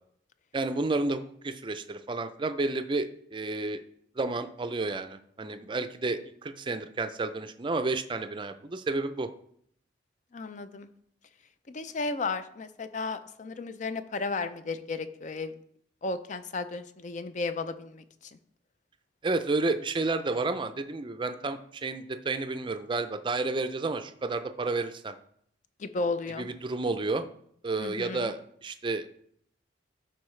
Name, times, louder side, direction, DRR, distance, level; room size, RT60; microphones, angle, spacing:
voice 1, 0.5-3.8 4.2-9.3 19.2-25.1 26.4-27.2 27.6-29.1, right 3 dB, 25° right, 9 dB, 0.4 m, -31 dB
voice 2, 10.3-10.9 11.7-15.6 16.0-18.3 25.8-26.5 27.8-28.3, left 3 dB, 40° left, 11 dB, 0.5 m, -34 dB
13.5 x 4.5 x 3.2 m, 0.68 s
head